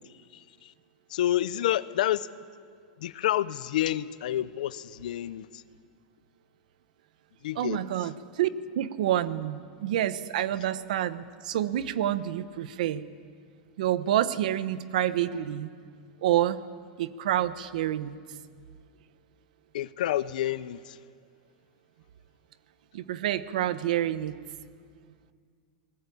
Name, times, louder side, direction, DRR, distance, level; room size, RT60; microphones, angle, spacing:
voice 1, 0.3-0.7 1.1-2.3 3.0-5.6 7.4-7.8 19.7-21.0, left 12 dB, 85° left, 16 dB, 0.8 m, -29 dB
voice 2, 7.5-8.5 8.7-13.1 13.8-15.7 16.2-16.6 17.0-18.2 22.9-24.4, right 12 dB, 75° right, 13 dB, 1.1 m, -28 dB
28.0 x 20.5 x 8.6 m, 2.1 s
supercardioid pair, 160°, 4 cm